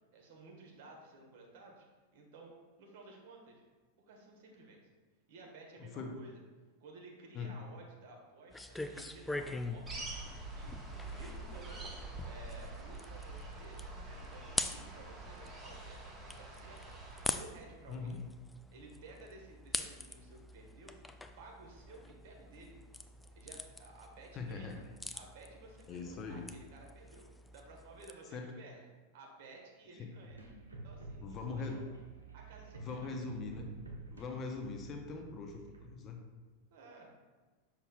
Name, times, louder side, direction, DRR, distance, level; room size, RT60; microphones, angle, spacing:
voice 1, 0.1-1.8 2.1-3.6 4.0-4.8 5.3-6.4 6.8-10.0 10.5-10.7 11.1-16.8 17.3-18.2 18.7-21.0 21.4-22.8 23.3-24.7 25.1-27.3 27.5-28.8 29.1-30.4 30.8-31.8 32.3-33.2 36.7-37.1, right 3 dB, 50° right, 0 dB, 1.4 m, -55 dB
voice 2, 5.8-6.2 7.3-7.5 17.9-18.2 24.3-24.8 25.9-26.5 28.3-28.5 30.0-30.1 31.2-31.8 32.8-33.7 34.1-36.2, left 4 dB, 30° left, 3 dB, 0.8 m, -41 dB
sound 1, 8.5-28.1, left 2 dB, 5° left, 0.3 m, -45 dB
sound 2, 9.8-17.4, right 2 dB, 15° right, 1.2 m, -46 dB
sound 3, 30.3-35.9, right 3 dB, 75° right, 1.1 m, -50 dB
6.7 x 6.0 x 2.4 m, 1.3 s
figure-of-eight pair, 90°, 0 cm